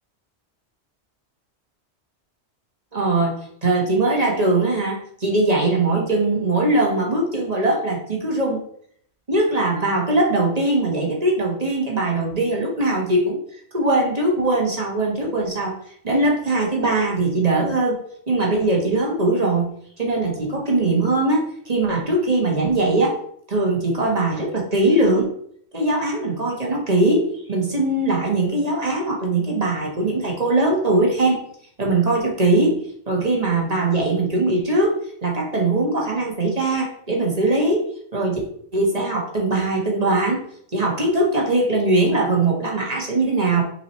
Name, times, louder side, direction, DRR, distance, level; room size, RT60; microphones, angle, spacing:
voice 1, 2.9-8.6 9.3-13.4 13.7-15.8 16.0-18.0 18.3-23.2 23.5-25.3 25.7-31.4 31.8-37.9 38.1-38.4 38.7-40.4 40.7-43.6, right 2 dB, 35° right, -2 dB, 1.5 m, -21 dB
6.2 x 4.8 x 3.2 m, 0.64 s
omnidirectional pair, 1.1 m